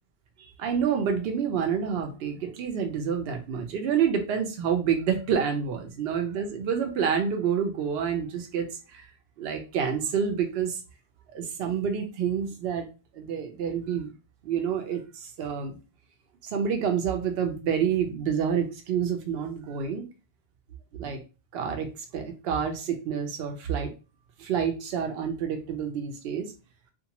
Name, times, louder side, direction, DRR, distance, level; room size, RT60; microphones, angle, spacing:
voice 1, 0.4-9.0 9.4-10.8 11.3-12.9 13.1-14.1 14.4-15.8 16.4-20.0 21.0-21.2 21.5-23.9 24.4-26.5, right 7 dB, 70° right, 5 dB, 0.8 m, -28 dB
2.5 x 2.2 x 2.8 m, 0.31 s
omnidirectional pair, 1.1 m